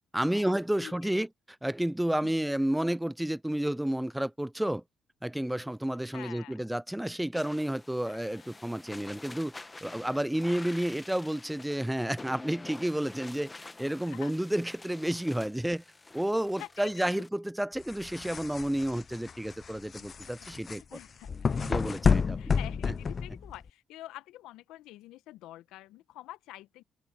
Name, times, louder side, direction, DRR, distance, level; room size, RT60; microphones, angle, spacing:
voice 1, 0.1-1.3 1.6-4.8 5.2-9.5 9.8-13.5 13.8-15.8 16.1-20.8 21.6-22.6, right 1 dB, 5° right, 0.4 m, -31 dB
voice 2, 6.1-6.7 8.0-8.5 10.1-10.2 14.1-14.3 16.6-17.2 20.0-20.2 20.7-21.3 22.0-26.8, left 15 dB, 75° left, 1.2 m, -47 dB
sound 1, 7.3-17.3, left 2 dB, 25° left, 1.5 m, -48 dB
sound 2, 17.8-23.7, left 5 dB, 45° left, 0.7 m, -30 dB
open air
hypercardioid pair, 50°, 0 cm